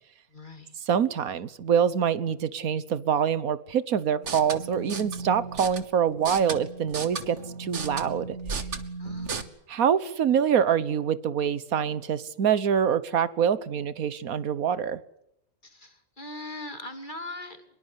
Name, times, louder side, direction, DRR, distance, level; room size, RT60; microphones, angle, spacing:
voice 1, 0.3-0.7 9.0-9.6 15.6-17.6, left 2 dB, 35° left, 7 dB, 3.0 m, -40 dB
voice 2, 0.9-8.4 9.7-15.0, right 8 dB, 85° right, 16 dB, 1.6 m, -25 dB
sound 1, 4.1-9.4, right 4 dB, 55° right, 1.9 m, -35 dB
24.0 x 22.0 x 8.1 m, 0.75 s
omnidirectional pair, 1.5 m